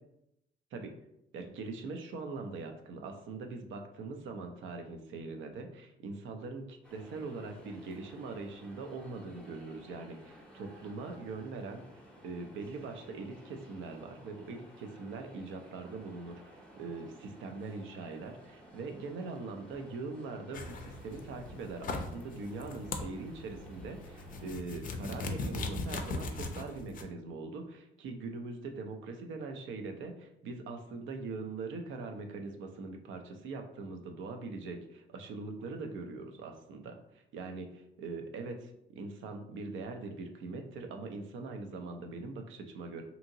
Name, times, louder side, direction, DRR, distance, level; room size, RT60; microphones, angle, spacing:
voice 1, 1.3-11.8 12.2-43.0, right 3 dB, 75° right, 4 dB, 0.5 m, -42 dB
sound 1, 6.8-24.5, right 1 dB, 5° left, 0.6 m, -55 dB
sound 2, 20.5-27.0, left 2 dB, 45° left, 0.4 m, -40 dB
2.8 x 2.7 x 2.6 m, 0.80 s
cardioid pair, 90°, 20 cm